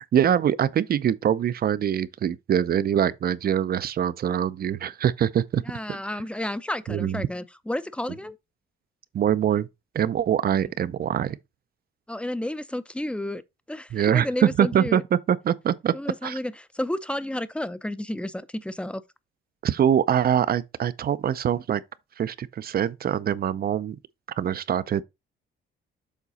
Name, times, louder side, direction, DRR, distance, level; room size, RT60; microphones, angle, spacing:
voice 1, 0.0-5.6 5.9-6.0 6.9-7.2 9.1-9.7 9.9-11.4 13.9-15.9 16.2-16.4 19.6-21.8 22.2-24.0 24.4-25.0, right 9 dB, 50° right, 0.6 m, -24 dB
voice 2, 5.7-8.4 12.1-13.4 13.7-15.0 15.9-19.0, left 1 dB, 5° left, 0.6 m, -31 dB
7.3 x 3.9 x 4.1 m
cardioid pair, 90°, 20 cm